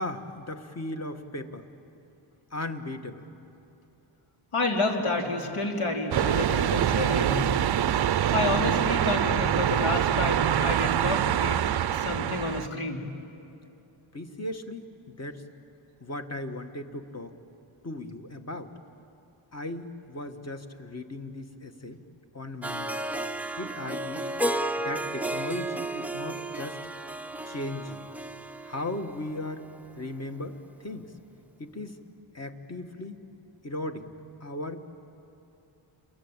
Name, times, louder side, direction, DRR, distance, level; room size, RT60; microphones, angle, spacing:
voice 1, 0.0-1.7 2.5-3.3 14.1-15.4 16.0-17.3 17.8-18.7 19.5-22.0 22.3-22.9 23.6-24.3 24.8-26.8 27.4-28.0 28.6-29.6 29.9-31.1 31.6-32.0 32.3-33.2 33.6-34.1 34.4-34.8, left 1 dB, 30° left, 6 dB, 1.6 m, -37 dB
voice 2, 4.5-7.5 8.3-13.1, left 2 dB, 75° left, 1 dB, 3.6 m, -29 dB
sound 1, 6.1-12.7, right 10 dB, 50° right, 0.6 m, -25 dB
Harp, 22.6-29.8, right 1 dB, 5° right, 0.6 m, -33 dB
29.5 x 22.5 x 8.9 m, 2.8 s
wide cardioid pair, 110°, 50 cm